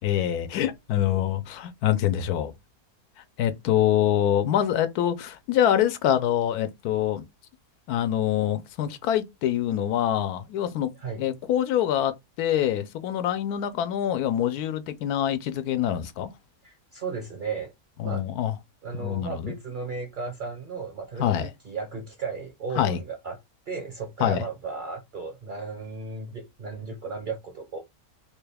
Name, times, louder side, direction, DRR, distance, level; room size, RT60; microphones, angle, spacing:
voice 1, 0.0-2.5 3.4-7.2 7.9-10.9 11.2-16.3 18.0-18.5 18.9-19.5 21.2-21.5 22.8-23.0 24.2-24.4, left 10 dB, 85° left, 1.1 m, -25 dB
voice 2, 1.0-1.3 11.0-11.2 16.6-17.7 18.0-18.2 18.8-23.4 23.7-27.8, right 4 dB, 50° right, 0.6 m, -35 dB
3.5 x 2.2 x 3.3 m
omnidirectional pair, 1.6 m